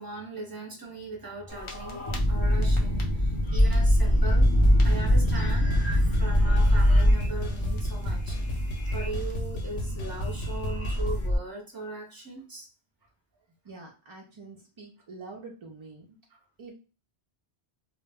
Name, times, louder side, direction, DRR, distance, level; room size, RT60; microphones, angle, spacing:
voice 1, 0.0-4.5 4.8-5.8 6.1-8.4 8.9-12.7 16.3-16.4, right 3 dB, 25° right, 0 dB, 0.7 m, -39 dB
sound 1, 1.5-11.4, equal, 35° left, 0.5 m, -24 dB
sound 2, 4.4-11.3, left 1 dB, 85° left, 0.9 m, -36 dB
voice 2, 13.6-16.2 16.6-16.7, right 3 dB, 50° right, -1 dB, 0.3 m, -45 dB
2.0 x 2.0 x 3.4 m, 0.34 s
omnidirectional pair, 1.1 m